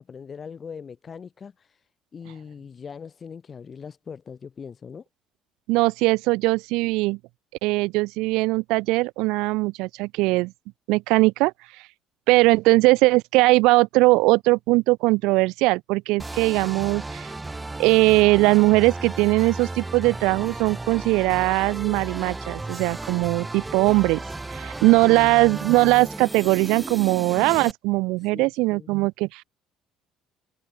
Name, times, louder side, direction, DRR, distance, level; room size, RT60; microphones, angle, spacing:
voice 1, 0.0-5.0 24.7-25.3 28.2-28.9, left 6 dB, 30° left, 6.4 m, -41 dB
voice 2, 5.7-7.2 7.6-10.5 10.9-11.5 12.3-17.3 17.8-24.2 24.5-29.4, right 23 dB, 90° right, 1.7 m, -20 dB
sound 1, 16.2-27.7, right 2 dB, 15° right, 4.8 m, -35 dB
cardioid pair, 125°, 0 cm